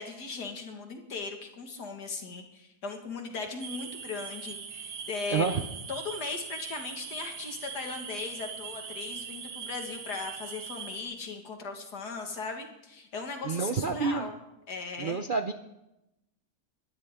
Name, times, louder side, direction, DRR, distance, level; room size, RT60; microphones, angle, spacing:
voice 1, 0.0-5.5 5.9-14.3 14.7-15.2, left 4 dB, 80° left, 4 dB, 2.4 m, -38 dB
sound 1, 3.6-11.0, right 7 dB, 70° right, 1.6 m, -41 dB
voice 2, 5.3-5.6 13.4-14.3 15.0-15.5, right 5 dB, 50° right, 7 dB, 0.6 m, -28 dB
21.0 x 13.5 x 3.7 m, 0.90 s
omnidirectional pair, 1.7 m